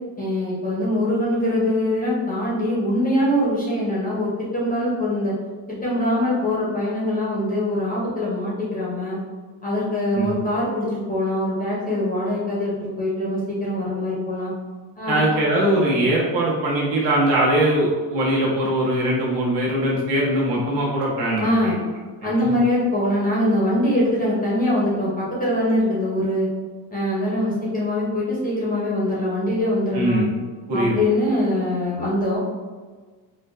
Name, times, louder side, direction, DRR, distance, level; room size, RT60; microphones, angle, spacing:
voice 1, 0.2-5.3 5.7-9.2 9.6-14.5 15.0-15.2 21.4-21.8 22.2-26.5 26.9-30.2 30.7-32.4, left 1 dB, 20° left, -6 dB, 0.6 m, -23 dB
voice 2, 15.1-21.7 22.2-22.6 29.9-30.4 30.7-31.0, right 1 dB, 70° right, -5 dB, 1.1 m, -21 dB
3.8 x 2.2 x 2.4 m, 1.4 s
cardioid pair, 175°, 44 cm